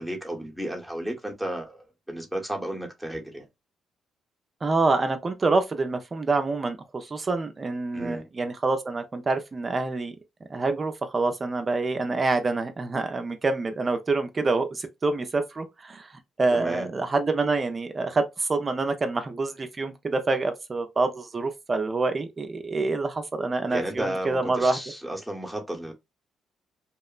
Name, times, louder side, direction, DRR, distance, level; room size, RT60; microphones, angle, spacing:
voice 1, 0.0-3.5 7.9-8.3 16.5-16.9 23.7-25.9, right 1 dB, ahead, 0.8 m, -33 dB
voice 2, 4.6-10.1 10.5-16.1 16.4-24.8, right 3 dB, 30° right, 0.4 m, -26 dB
2.9 x 2.0 x 2.3 m
cardioid pair, 90°, 0 cm